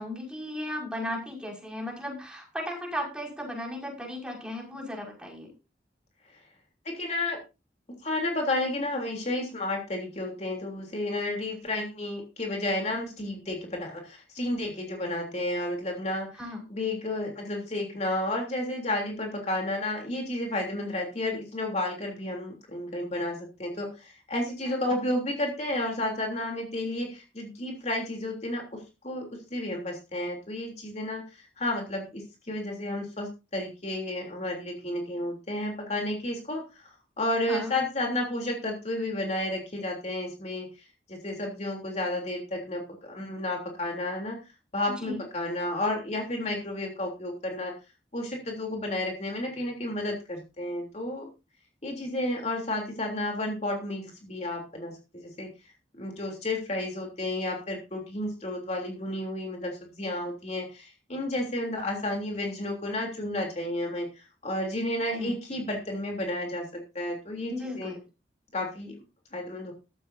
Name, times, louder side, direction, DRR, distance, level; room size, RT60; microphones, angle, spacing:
voice 1, 0.0-5.5 16.4-16.6 24.6-24.7 37.5-37.7 45.0-45.2 65.1-65.3 67.5-68.0, left 1 dB, 5° right, 0 dB, 5.6 m, -35 dB
voice 2, 6.9-7.4 8.0-16.4 16.7-36.9 37.2-40.7 41.1-44.4 44.7-47.7 48.1-51.3 51.8-55.5 56.0-64.1 64.4-67.9 68.5-69.0 69.3-69.7, left 1 dB, 40° left, 1 dB, 3.3 m, -32 dB
15.0 x 13.5 x 2.7 m, 0.29 s
head